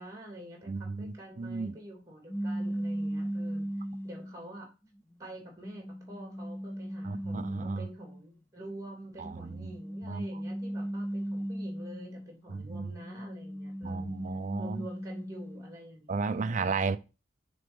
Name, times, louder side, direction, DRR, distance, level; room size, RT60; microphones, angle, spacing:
voice 1, 0.0-3.7 4.0-4.7 5.2-14.2 14.6-16.7, right 1 dB, 20° right, 3.0 m, -47 dB
voice 2, 0.7-1.8 7.0-7.9 9.2-9.7 10.0-10.3 12.5-12.9 13.8-14.9 16.1-17.0, right 4 dB, 45° right, 0.5 m, -34 dB
sound 1, 2.3-4.5 5.1-8.2 9.4-12.3 12.8-15.8, equal, 10° left, 0.4 m, -37 dB
6.7 x 4.0 x 5.3 m
head